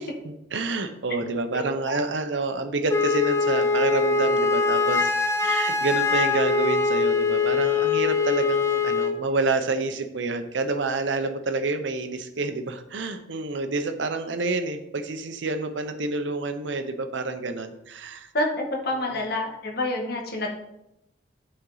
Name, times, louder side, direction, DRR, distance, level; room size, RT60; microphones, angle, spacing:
voice 1, 0.2-18.3 19.1-19.2, right 3 dB, 80° right, 8 dB, 0.7 m, -28 dB
Wind instrument woodwind instrument, 2.9-9.2, left 4 dB, 15° left, 0.5 m, -23 dB
voice 2, 18.3-20.5, left 1 dB, 60° left, 1 dB, 1.2 m, -27 dB
9.7 x 4.3 x 3.9 m, 0.85 s
head